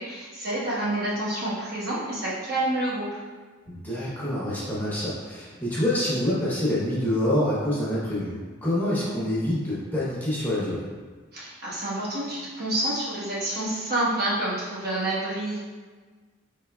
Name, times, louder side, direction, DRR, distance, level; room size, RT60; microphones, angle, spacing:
voice 1, 0.0-3.2 11.3-15.6, right 1 dB, 50° right, -8 dB, 1.1 m, -28 dB
voice 2, 3.7-10.9, left 1 dB, 10° left, -8 dB, 0.8 m, -26 dB
4.7 x 3.5 x 2.3 m, 1.4 s
head